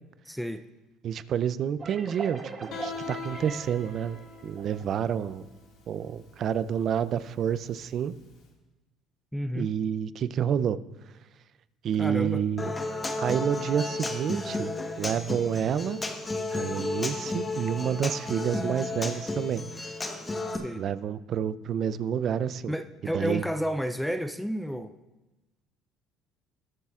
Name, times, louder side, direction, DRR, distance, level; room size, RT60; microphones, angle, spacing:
voice 1, 0.3-0.6 9.3-9.7 12.0-12.4 20.6-20.8 22.7-24.9, equal, ahead, 11 dB, 0.4 m, -31 dB
voice 2, 1.0-5.5 5.9-8.1 9.6-10.8 11.8-12.7 13.2-14.7 15.0-16.0 16.5-19.6 20.8-22.8 23.0-23.4, right 8 dB, 50° right, 15 dB, 0.5 m, -29 dB
sound 1, 1.8-5.3, right 3 dB, 30° right, 1.3 m, -41 dB
Guitar, 2.7-8.4, left 5 dB, 70° left, 2.0 m, -43 dB
Human voice / Acoustic guitar, 12.6-20.6, left 2 dB, 20° left, 1.2 m, -33 dB
20.5 x 7.4 x 2.4 m, 1.1 s
supercardioid pair, 95°, 0 cm